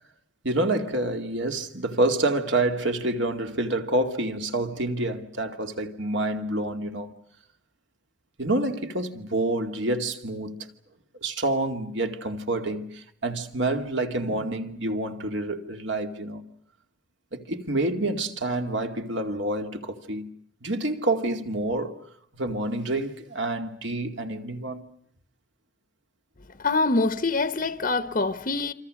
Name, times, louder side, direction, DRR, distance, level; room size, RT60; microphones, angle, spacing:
voice 1, 0.4-7.1 8.4-10.6 11.2-16.4 17.3-20.3 20.6-22.0 22.3-24.8, right 2 dB, 60° right, 2.4 m, -28 dB
voice 2, 26.6-28.7, left 3 dB, 40° left, 1.0 m, -25 dB
27.5 x 27.0 x 6.5 m
head